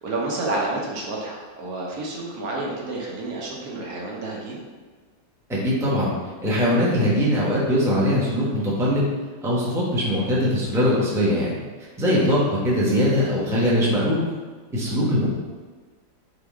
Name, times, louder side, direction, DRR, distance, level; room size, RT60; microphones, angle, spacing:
voice 1, 0.0-4.6 12.1-12.3 14.8-15.0, right 2 dB, 60° right, -3 dB, 1.2 m, -30 dB
voice 2, 5.5-6.1 6.4-9.0 9.4-11.5 12.0-14.2 14.7-15.3, equal, 5° right, -7 dB, 0.4 m, -21 dB
4.1 x 3.4 x 3.6 m, 1.4 s
omnidirectional pair, 2.0 m